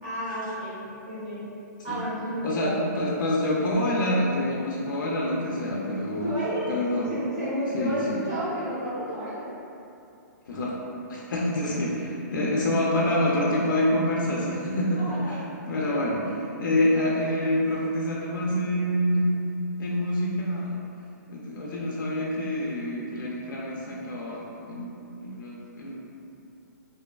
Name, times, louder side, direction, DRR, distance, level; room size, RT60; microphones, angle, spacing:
voice 1, 0.0-1.5 1.8-2.8 6.2-6.7 7.1-9.5 15.0-15.4 15.7-16.0, equal, 15° right, -11 dB, 0.4 m, -32 dB
voice 2, 2.4-6.4 6.7-7.1 7.7-8.2 10.5-10.8 11.1-15.4 15.7-19.3 19.8-20.8 21.3-24.9 25.2-26.0, left 1 dB, 85° left, -4 dB, 0.4 m, -26 dB
2.5 x 2.2 x 2.3 m, 2.7 s
hypercardioid pair, 175°, 10 cm